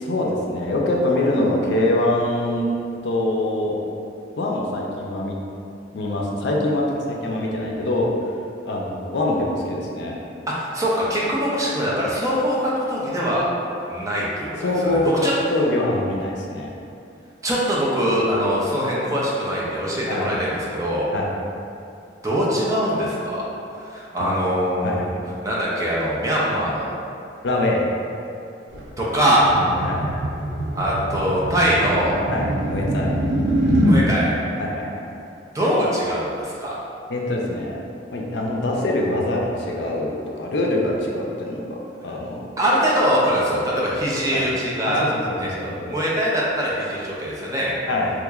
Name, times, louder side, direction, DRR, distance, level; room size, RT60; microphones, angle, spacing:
voice 1, 0.0-2.7 3.0-3.7 4.4-5.4 5.9-8.1 8.7-10.2 14.6-15.2 15.5-16.7 20.1-20.4 21.1-21.3 24.2-24.4 24.8-25.2 27.4-27.8 29.5-30.3 32.3-33.1 34.6-35.0 37.1-37.8 38.1-42.5 44.1-44.4 44.8-45.7 47.9-48.1, left 1 dB, 70° left, -1 dB, 0.4 m, -24 dB
voice 2, 10.5-13.5 13.9-15.3 17.4-21.1 22.2-23.5 23.8-24.9 25.4-26.9 29.0-29.6 30.8-32.2 33.8-34.3 35.5-36.8 42.6-45.1 45.4-47.7, equal, 20° right, -6 dB, 0.5 m, -22 dB
sound 1, 28.7-34.0, equal, 70° right, 0.5 m, -23 dB
3.6 x 3.0 x 2.3 m, 2.6 s
head